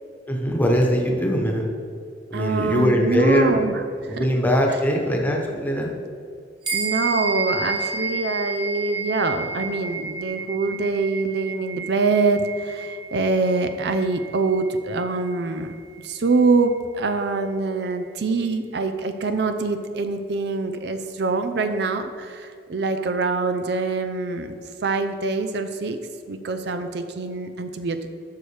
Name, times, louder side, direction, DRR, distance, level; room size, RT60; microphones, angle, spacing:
voice 1, 0.3-1.6 2.3-3.6 4.1-5.9, equal, 10° left, 0 dB, 1.1 m, -21 dB
voice 2, 2.3-4.3 6.7-15.8 16.0-26.0 26.3-28.0, right 3 dB, 65° right, 7 dB, 0.5 m, -24 dB
sound 1, 6.6-16.4, right 4 dB, 25° right, 1.8 m, -31 dB
11.5 x 6.3 x 3.4 m, 2.3 s
head